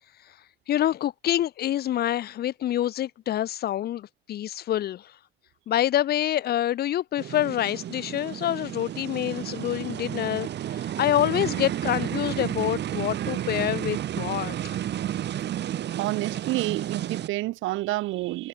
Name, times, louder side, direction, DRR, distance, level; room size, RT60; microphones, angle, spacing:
voice 1, 0.7-5.1 5.7-14.8, left 12 dB, 55° left, 0.4 m, -27 dB
sound 1, 7.2-17.3, right 11 dB, 60° right, 0.8 m, -32 dB
voice 2, 16.0-18.5, right 18 dB, 80° right, 0.4 m, -29 dB
cardioid pair, 90°, 20 cm